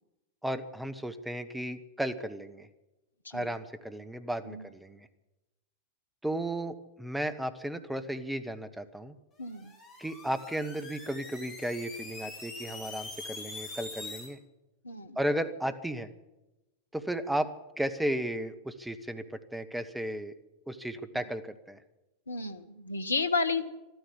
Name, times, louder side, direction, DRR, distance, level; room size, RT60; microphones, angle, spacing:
voice 1, 0.4-2.7 3.3-5.1 6.2-9.1 10.0-14.4 15.2-16.1 16.9-17.5 17.8-20.3 20.7-21.8, right 1 dB, 5° right, 10 dB, 1.0 m, -34 dB
voice 2, 9.4-9.7 14.8-15.2 22.3-23.7, left 4 dB, 75° left, 10 dB, 0.9 m, -32 dB
sound 1, 9.5-14.3, left 3 dB, 30° left, 4.4 m, -44 dB
13.0 x 12.5 x 8.5 m, 1.0 s
figure-of-eight pair, 90°, 0 cm